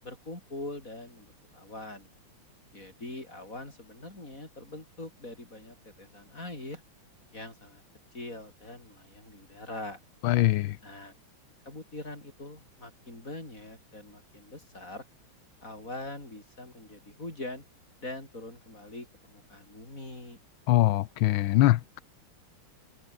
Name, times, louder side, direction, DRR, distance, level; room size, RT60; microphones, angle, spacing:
voice 1, 0.0-2.1 2.7-6.8 7.3-7.8 8.1-10.0 10.8-11.1 11.7-15.1 15.6-17.6 18.0-20.4, left 2 dB, 35° left, 7.4 m, -43 dB
voice 2, 10.2-10.8 20.7-22.0, left 16 dB, 75° left, 1.4 m, -23 dB
open air
omnidirectional pair, 2.3 m